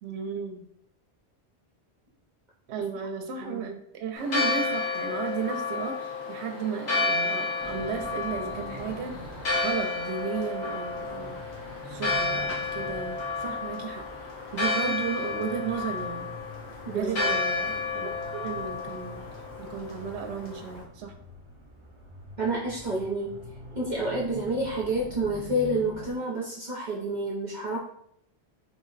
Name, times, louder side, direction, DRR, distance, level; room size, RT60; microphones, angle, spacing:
voice 1, 0.0-0.6 2.7-9.2 9.5-11.4 11.8-14.0 14.5-16.3 16.9-19.3 19.6-21.1, right 6 dB, 80° right, 5 dB, 0.8 m, -34 dB
Church bell, 4.2-20.8, left 3 dB, 70° left, 1.2 m, -31 dB
sound 1, 7.6-26.1, equal, 15° right, 0.7 m, -45 dB
voice 2, 16.9-17.3 22.4-23.4 23.8-27.8, right 1 dB, 45° right, -6 dB, 0.8 m, -29 dB
3.0 x 2.1 x 3.8 m, 0.70 s
omnidirectional pair, 1.1 m